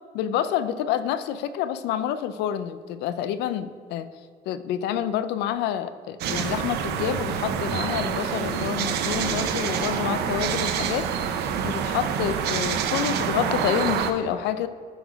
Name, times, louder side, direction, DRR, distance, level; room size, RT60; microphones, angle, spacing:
voice 1, 0.1-4.1 4.5-11.1 11.6-14.7, left 10 dB, 85° left, 13 dB, 0.5 m, -28 dB
sound 1, 6.2-14.1, right 7 dB, 75° right, 0.7 m, -27 dB
9.1 x 4.1 x 5.2 m, 2.1 s
cardioid pair, 110°, 17 cm